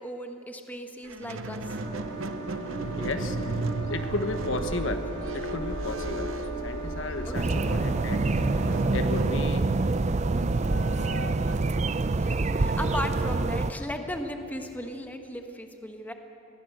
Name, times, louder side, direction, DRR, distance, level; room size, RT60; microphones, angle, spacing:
voice 1, 0.0-1.8 7.2-7.7 12.1-16.1, equal, 10° left, 4 dB, 1.3 m, -37 dB
Squeak, 1.0-7.4 8.3-13.5, right 2 dB, 90° right, 0.8 m, -36 dB
sound 1, 1.6-8.8, right 2 dB, 60° right, 6.6 m, -36 dB
voice 2, 3.0-3.6 3.9-5.1 5.3-8.2 8.5-9.7 13.3-13.4, left 2 dB, 70° left, 7 dB, 1.3 m, -34 dB
sound 2, 7.3-13.7, right 3 dB, 35° right, 0.5 m, -26 dB
21.5 x 17.0 x 7.9 m, 2.8 s
head